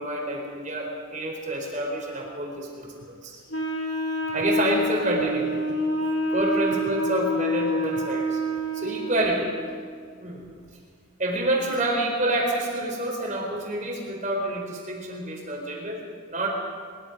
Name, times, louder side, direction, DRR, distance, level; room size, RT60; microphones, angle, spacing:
voice 1, 0.0-3.4 4.3-5.8 6.3-8.4 8.7-9.5 10.2-10.4 11.2-16.0 16.3-16.5, right 1 dB, 35° right, 0 dB, 4.4 m, -28 dB
Wind instrument woodwind instrument, 3.5-9.4, equal, 65° left, 3.5 m, -27 dB
22.5 x 22.0 x 5.3 m, 2.1 s
head